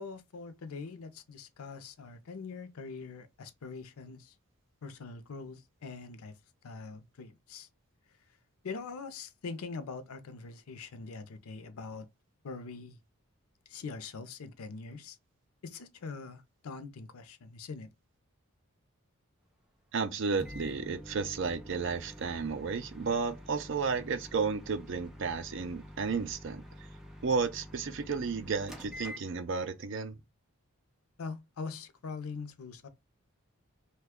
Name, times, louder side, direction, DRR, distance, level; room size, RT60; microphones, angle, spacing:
voice 1, 0.0-4.3 4.8-6.4 6.6-7.7 8.6-12.1 12.4-13.0 13.7-15.2 15.6-17.9 31.2-32.9, left 4 dB, 90° left, 0.5 m, -43 dB
voice 2, 19.9-26.6 27.2-30.1, right 5 dB, 60° right, 0.5 m, -33 dB
Microwave oven, 20.4-29.8, left 1 dB, 5° right, 0.4 m, -48 dB
2.9 x 2.2 x 3.5 m
head